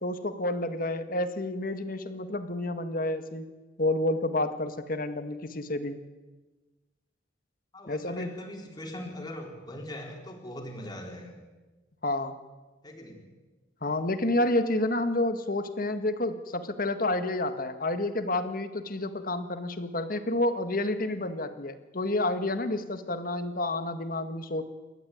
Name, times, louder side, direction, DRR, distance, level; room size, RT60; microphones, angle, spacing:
voice 1, 0.0-3.5 3.8-6.0 7.9-8.3 12.0-12.4 13.8-24.6, left 2 dB, 50° left, 9 dB, 1.8 m, -29 dB
voice 2, 7.7-11.3 12.8-13.3, left 1 dB, 25° left, 1 dB, 4.2 m, -41 dB
29.0 x 13.5 x 9.4 m, 1.2 s
head